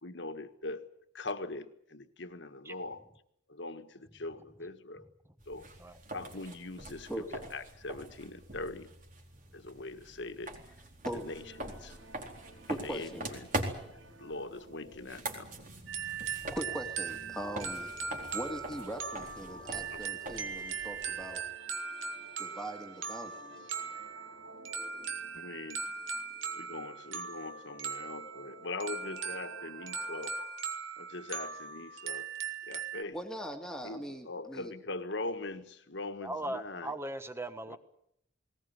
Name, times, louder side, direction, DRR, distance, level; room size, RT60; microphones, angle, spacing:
voice 1, 0.0-0.9 1.1-3.0 3.5-5.1 5.4-5.7 6.1-8.9 9.5-10.7 11.1-12.0 12.7-13.5 13.9-15.5 19.4-19.6 19.9-20.0 25.3-25.9 26.5-30.4 31.0-32.3 32.7-33.2 33.8-36.9 37.7-37.8, left 2 dB, 60° left, 9 dB, 1.7 m, -42 dB
sound 1, 5.4-21.5, right 2 dB, 45° right, 4.2 m, -43 dB
sound 2, 11.1-30.5, right 1 dB, 70° right, 6.2 m, -54 dB
voice 2, 12.5-13.3 16.5-17.9 18.3-21.4 22.4-23.5 33.1-34.7, equal, 5° left, 3 dB, 2.2 m, -40 dB
sound 3, 15.9-33.0, right 6 dB, 85° right, 2.4 m, -39 dB
voice 3, 36.2-37.8, right 1 dB, 15° right, 10 dB, 1.4 m, -38 dB
20.0 x 19.5 x 9.7 m, 0.74 s
head